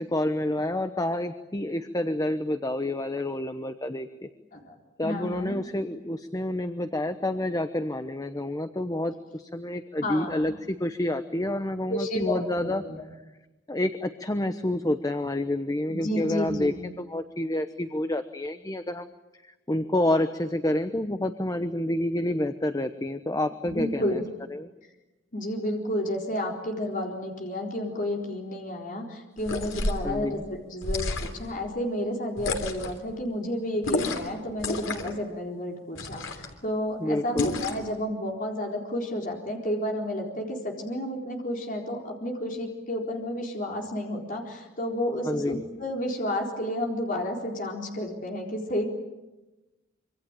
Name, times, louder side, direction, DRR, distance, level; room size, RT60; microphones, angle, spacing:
voice 1, 0.0-4.3 5.0-12.8 13.7-19.1 19.7-24.2 24.5-24.7 30.0-30.4 37.0-37.5 45.3-45.6, left 1 dB, 20° left, 9 dB, 1.0 m, -28 dB
voice 2, 5.0-5.6 10.0-10.5 11.9-13.0 15.9-16.8 23.6-24.3 25.3-48.8, left 1 dB, 45° left, 1 dB, 4.1 m, -31 dB
sound 1, 29.4-30.1 30.8-31.5 32.4-33.0 33.8-34.3 34.6-35.2 36.0-36.5 37.4-37.9, left 2 dB, 85° left, 3.4 m, -30 dB
26.0 x 25.5 x 9.0 m, 1.0 s
head